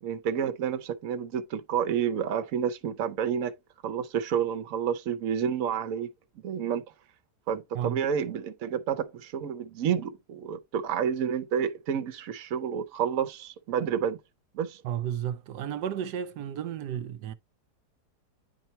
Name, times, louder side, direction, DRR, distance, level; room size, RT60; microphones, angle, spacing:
voice 1, 0.0-3.5 3.8-6.1 6.4-6.8 7.5-14.2 14.5-14.8, right 8 dB, 60° right, 1.2 m, -29 dB
voice 2, 14.8-17.3, right 10 dB, 85° right, 1.2 m, -33 dB
9.7 x 4.4 x 2.9 m
omnidirectional pair, 1.7 m